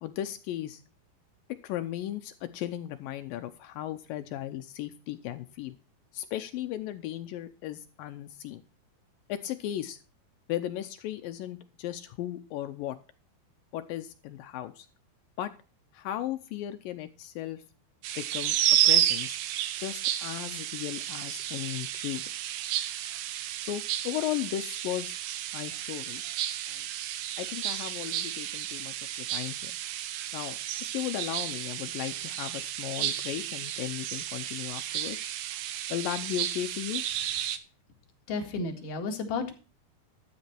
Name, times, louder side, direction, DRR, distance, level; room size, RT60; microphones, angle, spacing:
voice 1, 0.0-0.8 1.6-5.8 6.1-8.6 9.3-10.0 10.5-13.0 13.7-14.9 15.4-15.5 15.9-17.6 18.2-18.6 18.8-19.4 19.8-22.2 23.6-25.2 25.5-26.2 26.7-26.9 27.4-29.7 30.3-35.3 35.9-37.0, left 13 dB, 85° left, 9 dB, 2.0 m, -36 dB
sound 1, 18.0-37.6, right 12 dB, 75° right, 2.4 m, -32 dB
voice 2, 38.3-39.5, left 4 dB, 55° left, 3 dB, 3.2 m, -32 dB
12.5 x 8.4 x 4.4 m, 0.35 s
omnidirectional pair, 4.9 m